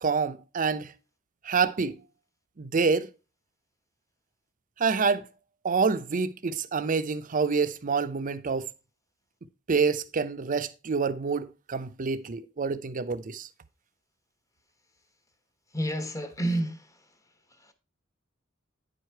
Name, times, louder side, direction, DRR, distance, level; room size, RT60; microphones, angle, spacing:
voice 1, 0.0-0.9 1.4-2.0 2.6-3.1 4.8-5.3 5.6-8.7 9.7-13.5, right 5 dB, 40° right, 0.6 m, -27 dB
voice 2, 15.7-16.9 17.6-17.7, right 1 dB, 15° left, 1.0 m, -30 dB
9.7 x 4.8 x 4.4 m
head